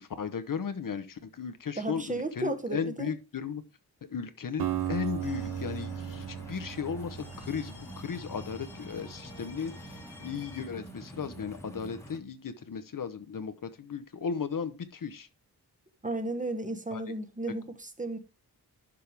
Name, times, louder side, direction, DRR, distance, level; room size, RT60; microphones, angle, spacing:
voice 1, 0.0-3.6 4.1-9.7 10.2-15.3 16.9-17.0, left 6 dB, 60° left, 0.9 m, -36 dB
voice 2, 1.8-3.1 16.0-18.2, right 2 dB, 20° right, 1.1 m, -34 dB
sound 1, 4.6-12.2, right 1 dB, 5° left, 1.3 m, -46 dB
Acoustic guitar, 4.6-8.7, right 11 dB, 75° right, 0.6 m, -36 dB
sound 2, 5.2-10.7, left 2 dB, 85° left, 3.2 m, -52 dB
11.5 x 5.5 x 3.4 m
wide cardioid pair, 140°, 38 cm